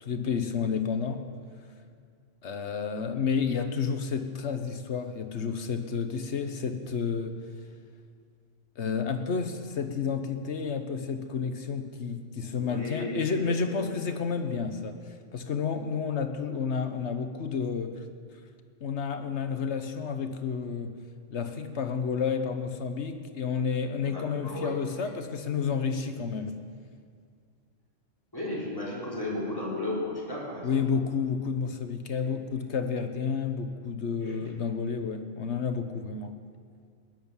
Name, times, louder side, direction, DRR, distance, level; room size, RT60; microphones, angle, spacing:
voice 1, 0.0-1.3 2.4-7.4 8.8-18.0 18.8-21.0 21.3-26.5 30.6-36.4, left 6 dB, 65° left, 8 dB, 1.3 m, -30 dB
voice 2, 12.5-13.9 24.0-24.7 25.0-25.1 28.3-30.8 32.1-32.3 34.2-34.4, left 2 dB, 20° left, -6 dB, 4.3 m, -35 dB
18.5 x 10.5 x 7.1 m, 2.1 s
omnidirectional pair, 1.2 m